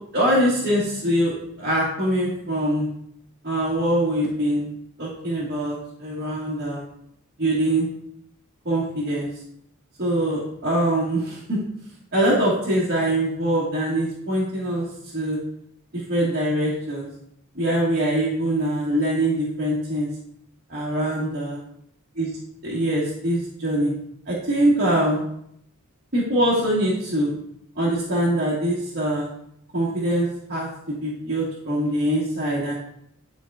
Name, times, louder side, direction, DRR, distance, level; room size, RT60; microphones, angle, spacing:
voice 1, 0.1-2.9 3.4-4.7 5.0-6.8 7.4-7.9 8.6-9.3 10.0-11.6 12.1-14.9 15.1-15.4 16.1-17.1 17.5-20.1 20.7-21.6 22.1-22.3 22.6-23.9 24.3-25.2 26.1-27.3 27.8-29.3 29.7-32.7, right 1 dB, 50° right, -8 dB, 1.5 m, -23 dB
10.0 x 4.4 x 2.4 m, 0.72 s
head